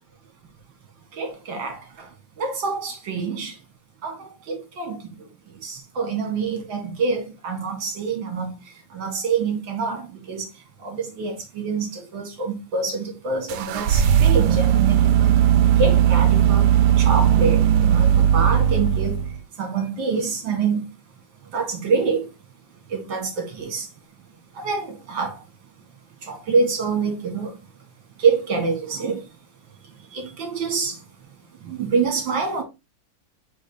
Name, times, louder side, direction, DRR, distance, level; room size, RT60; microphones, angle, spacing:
voice 1, 1.2-2.1 2.4-3.5 4.0-5.0 5.6-8.5 8.9-10.5 10.8-15.3 15.8-16.7 17.0-19.2 19.6-20.8 21.5-22.3 22.9-23.9 24.6-25.3 26.2-27.5 28.2-29.2 30.1-31.0 31.6-32.6, right 4 dB, 60° right, 2.6 m, -26 dB
sound 1, 13.5-19.4, right 10 dB, 85° right, 1.5 m, -17 dB
8.0 x 3.5 x 4.2 m
omnidirectional pair, 2.4 m